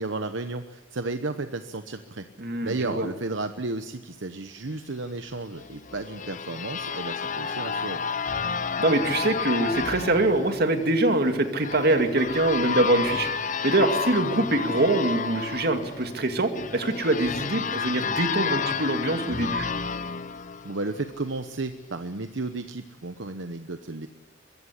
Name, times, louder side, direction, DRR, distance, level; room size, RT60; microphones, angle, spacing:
voice 1, 0.0-2.2 2.6-8.0 20.6-24.1, right 3 dB, 75° right, 8 dB, 1.0 m, -33 dB
voice 2, 2.4-3.1 8.8-13.3 13.6-19.7, right 2 dB, 55° right, 6 dB, 2.4 m, -24 dB
sound 1, 5.6-21.2, left 5 dB, 40° left, 0.8 m, -31 dB
23.0 x 15.5 x 10.0 m, 1.2 s
head